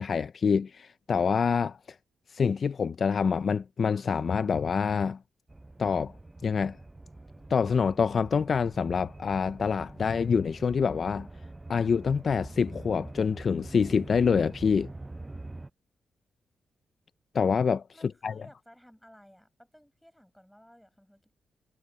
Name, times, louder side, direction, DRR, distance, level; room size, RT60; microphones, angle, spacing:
voice 1, 0.0-1.8 2.3-5.2 5.8-6.1 6.4-6.8 7.5-11.3 11.7-14.9 17.3-17.8 18.2-18.3, left 6 dB, 50° left, 0.5 m, -26 dB
sound 1, 5.5-15.7, right 2 dB, 15° right, 0.6 m, -44 dB
voice 2, 17.9-21.3, equal, 5° left, 7.6 m, -56 dB
cardioid pair, 95°, 0 cm